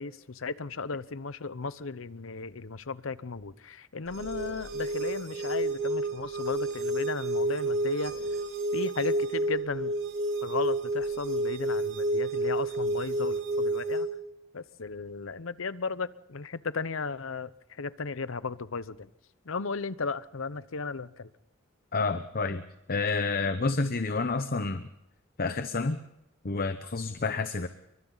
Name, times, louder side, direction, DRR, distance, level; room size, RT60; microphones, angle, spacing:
voice 1, 0.0-8.1 8.7-9.9 10.4-14.1 14.5-17.5 17.8-19.1 19.5-21.3, left 4 dB, 80° left, 16 dB, 0.8 m, -35 dB
sound 1, 4.1-14.1, right 2 dB, 75° right, 6.8 m, -30 dB
voice 2, 21.9-22.6 22.9-24.9 25.4-26.0 26.4-27.7, left 3 dB, 45° left, 10 dB, 0.9 m, -29 dB
28.0 x 23.5 x 4.0 m, 0.83 s
head